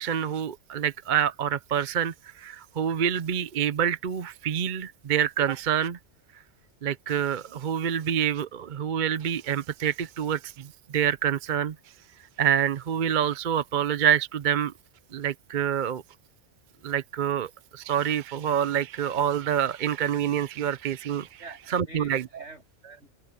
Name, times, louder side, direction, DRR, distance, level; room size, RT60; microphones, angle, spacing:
voice 1, 0.0-6.0 6.8-10.7 10.9-11.7 12.4-14.7 15.1-16.0 16.8-21.4 21.7-22.2, right 9 dB, 50° right, 0.7 m, -27 dB
voice 2, 21.4-23.1, right 2 dB, 70° right, 7.7 m, -47 dB
omnidirectional pair, 1.2 m